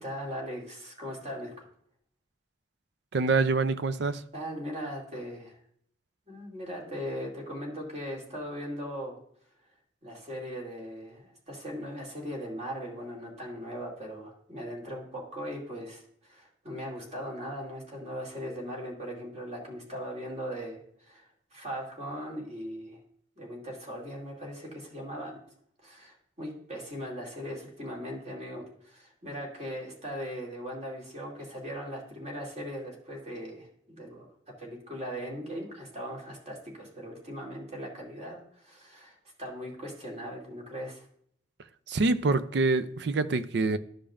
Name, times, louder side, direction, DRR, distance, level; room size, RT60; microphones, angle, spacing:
voice 1, 0.0-1.5 4.3-5.6 6.3-9.2 10.0-20.8 21.0-23.0 23.4-25.4 25.8-34.3 34.6-41.1, equal, 40° right, 2.5 m, -39 dB
voice 2, 3.1-4.2 41.9-43.8, right 3 dB, 65° right, 0.5 m, -26 dB
13.0 x 5.1 x 2.5 m
head